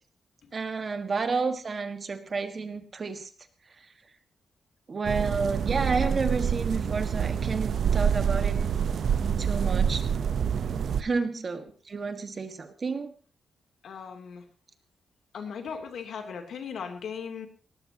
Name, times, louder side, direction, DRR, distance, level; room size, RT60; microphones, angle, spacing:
voice 1, 0.5-3.3 4.9-8.6 9.4-10.0 11.0-13.1, right 4 dB, 35° right, 8 dB, 1.6 m, -30 dB
sound 1, 5.0-11.0, right 7 dB, 65° right, 0.8 m, -26 dB
voice 2, 10.5-10.9 13.8-14.4 15.3-17.5, left 6 dB, 75° left, 4 dB, 3.0 m, -38 dB
20.0 x 19.0 x 2.9 m, 0.35 s
wide cardioid pair, 165°, 0 cm